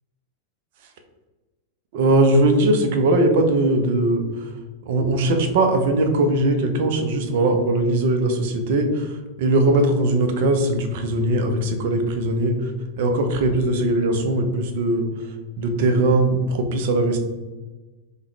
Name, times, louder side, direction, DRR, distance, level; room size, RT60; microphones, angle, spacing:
voice 1, 1.9-4.5 4.9-12.7 13.0-17.2, right 2 dB, 50° right, 6 dB, 0.5 m, -20 dB
3.6 x 2.1 x 3.0 m, 1.2 s
figure-of-eight pair, 90°, 0 cm